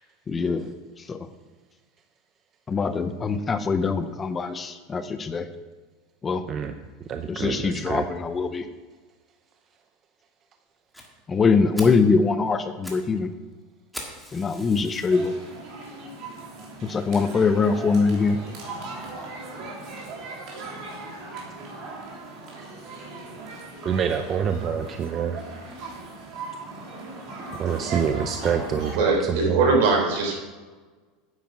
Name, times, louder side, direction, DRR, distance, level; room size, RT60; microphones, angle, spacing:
voice 1, 0.3-1.3 2.7-5.5 6.2-6.4 7.3-8.6 11.3-13.3 14.3-15.3 16.8-18.4, left 4 dB, 20° left, 10 dB, 0.6 m, -23 dB
voice 2, 7.1-8.0 23.8-25.4 27.6-29.8, right 7 dB, 30° right, 7 dB, 0.6 m, -26 dB
Fire, 10.9-11.1 11.5-11.6 11.7-12.0 12.6-13.1 13.3-13.4 13.9-15.3 15.9-16.0 16.5-16.6 16.9-17.0 17.3-17.4, equal, ahead, 1.7 m, -40 dB
sound 1, 15.1-28.9, right 3 dB, 45° right, 3.2 m, -38 dB
voice 3, 28.9-30.3, right 4 dB, 70° right, 1 dB, 3.8 m, -21 dB
9.6 x 8.3 x 6.2 m, 1.3 s
supercardioid pair, 150°, 0 cm